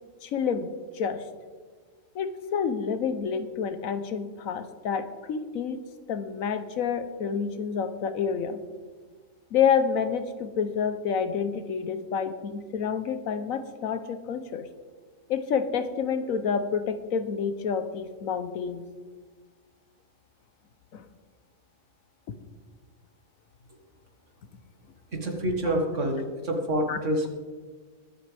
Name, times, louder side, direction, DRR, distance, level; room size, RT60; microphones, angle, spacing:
voice 1, 0.2-1.2 2.1-5.8 6.1-8.6 9.5-14.7 15.3-18.8 20.9-21.1 26.9-27.0, left 6 dB, 85° left, 10 dB, 1.3 m, -28 dB
voice 2, 25.1-27.3, equal, 65° right, 2 dB, 2.1 m, -27 dB
22.0 x 8.0 x 3.4 m, 1.5 s
omnidirectional pair, 1.4 m